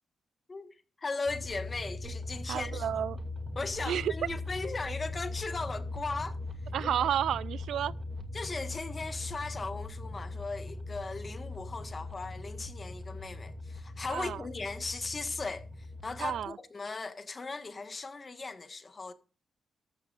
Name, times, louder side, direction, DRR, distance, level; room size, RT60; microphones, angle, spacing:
voice 1, 0.5-2.9 3.5-6.4 6.8-6.9 8.3-19.1, left 3 dB, 30° left, 1.5 m, -38 dB
sound 1, 1.3-16.5, left 2 dB, 35° right, 2.4 m, -40 dB
voice 2, 2.5-3.2 3.9-4.1 6.7-7.9 14.1-14.4 16.2-16.5, right 10 dB, 90° right, 0.4 m, -31 dB
13.5 x 13.5 x 2.5 m
wide cardioid pair, 130°, 0 cm